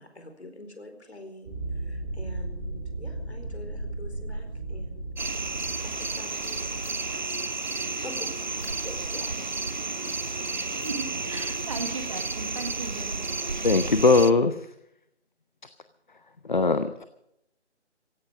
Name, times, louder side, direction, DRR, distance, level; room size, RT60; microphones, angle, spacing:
voice 1, 0.0-5.0 5.8-7.5 7.8-9.6 10.1-10.2 11.3-11.4, left 2 dB, 65° left, 6 dB, 4.6 m, -46 dB
sound 1, 1.4-7.6, right 2 dB, 5° right, 0.9 m, -36 dB
sound 2, 5.2-14.3, right 3 dB, 40° right, 0.5 m, -32 dB
voice 2, 10.8-13.2, right 3 dB, 25° right, 7 dB, 1.6 m, -36 dB
voice 3, 13.6-14.5 16.5-17.0, left 3 dB, 45° left, 11 dB, 0.8 m, -20 dB
16.5 x 16.5 x 5.2 m, 0.78 s
figure-of-eight pair, 155°, 35 cm